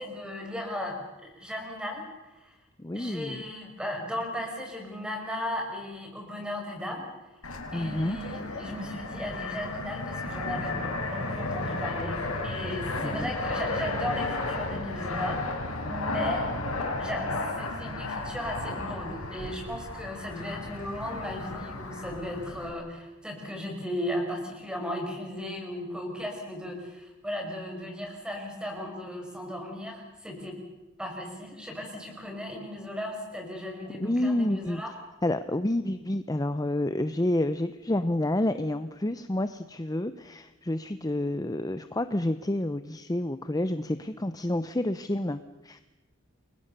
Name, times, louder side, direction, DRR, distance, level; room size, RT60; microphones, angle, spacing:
voice 1, 0.0-2.0 2.3-2.5 2.9-7.1 7.7-10.8 11.1-12.2 12.4-15.6 15.9-16.5 17.0-30.6 31.0-34.9, left 1 dB, 5° right, 2 dB, 5.7 m, -36 dB
voice 2, 2.8-3.4 7.7-8.2 13.0-13.3 34.0-34.8 35.2-45.8, left 1 dB, 15° left, 11 dB, 0.8 m, -29 dB
Fixed-wing aircraft airplane, 7.4-22.7, left 2 dB, 85° left, 4.8 m, -33 dB
29.5 x 22.0 x 6.8 m, 1.0 s
head